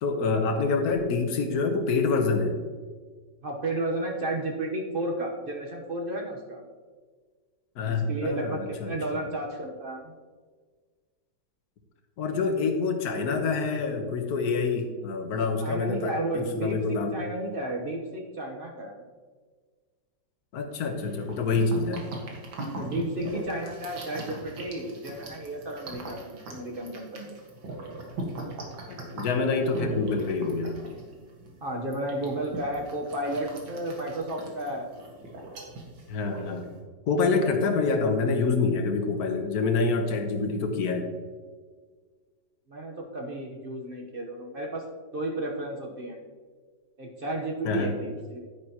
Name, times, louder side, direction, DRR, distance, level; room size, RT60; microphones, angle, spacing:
voice 1, 0.0-2.5 7.8-8.9 12.2-17.2 20.5-22.0 28.9-30.8 36.1-36.8 37.1-41.1 47.6-47.9, left 4 dB, 60° left, 4 dB, 1.5 m, -26 dB
voice 2, 3.4-6.7 7.8-10.1 15.6-19.0 22.8-27.4 31.6-34.9 42.7-44.9 45.1-46.2 47.0-48.4, right 1 dB, 35° right, 1 dB, 1.1 m, -33 dB
sound 1, 21.0-36.8, right 2 dB, 90° right, 2.3 m, -40 dB
10.5 x 9.3 x 3.0 m, 1.5 s
omnidirectional pair, 2.0 m